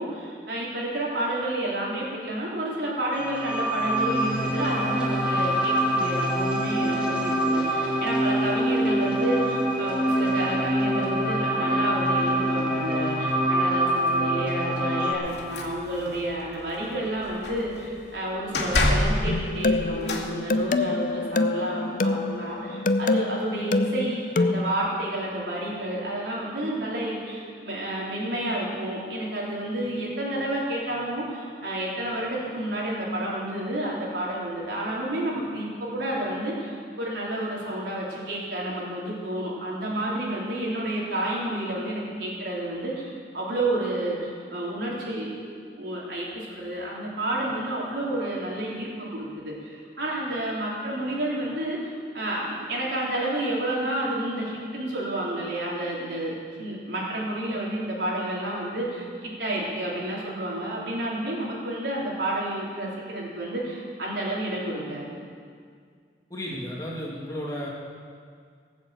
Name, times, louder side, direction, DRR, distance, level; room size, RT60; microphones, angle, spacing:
voice 1, 0.0-65.2, right 1 dB, 85° right, -5 dB, 3.6 m, -30 dB
sound 1, 3.1-15.1, right 1 dB, 5° right, 2.3 m, -25 dB
sound 2, 15.3-16.2 16.6-16.9 17.2-17.8 18.5-20.3, left 1 dB, 85° left, 2.1 m, -26 dB
sound 3, 19.2-24.7, left 2 dB, 45° left, 0.5 m, -26 dB
voice 2, 66.3-67.7, equal, 20° left, -4 dB, 1.9 m, -33 dB
18.5 x 7.4 x 7.8 m, 2.1 s
head